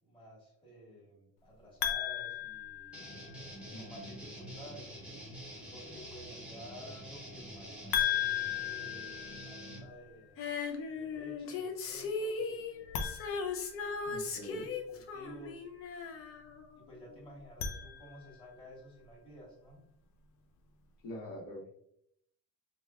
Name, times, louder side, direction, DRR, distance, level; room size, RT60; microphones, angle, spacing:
voice 1, 0.0-3.0 3.7-4.9 5.7-10.5 10.9-13.1 14.4-15.6 16.7-19.8, equal, 15° left, -6 dB, 1.4 m, -52 dB
sound 1, 1.8-3.5 7.9-10.0 12.8-14.4 17.4-18.6, left 10 dB, 90° left, 0.6 m, -36 dB
sound 2, 2.9-9.8, equal, 5° right, 0.7 m, -47 dB
voice 2, 3.7-4.1 14.1-14.7 21.0-21.7, left 1 dB, 65° left, -3 dB, 1.1 m, -44 dB
Female singing, 10.4-17.0 17.3-17.4, left 4 dB, 40° left, 0.4 m, -38 dB
4.9 x 2.3 x 2.3 m, 0.72 s
cardioid pair, 160°, 36 cm